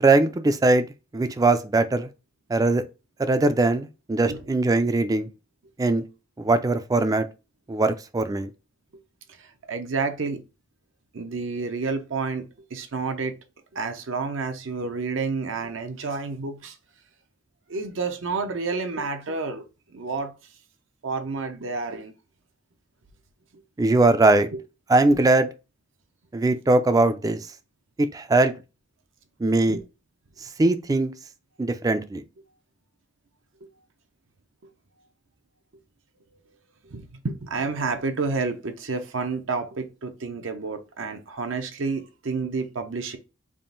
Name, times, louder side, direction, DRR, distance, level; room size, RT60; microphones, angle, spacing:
voice 1, 0.0-0.9 1.1-2.1 2.5-2.8 3.2-5.3 5.8-6.0 6.4-7.3 7.7-8.5 23.8-24.5 24.9-25.5 26.3-27.4 28.0-28.5 29.4-29.8 30.6-31.1 31.6-32.2, right 2 dB, 20° right, 0.3 m, -20 dB
voice 2, 9.4-10.4 11.1-12.5 12.7-13.4 13.7-16.8 17.7-19.6 19.9-20.3 21.0-22.1 24.5-24.6 29.7-29.8 36.9-43.2, right 4 dB, 70° right, 0.7 m, -30 dB
3.6 x 2.5 x 3.8 m
head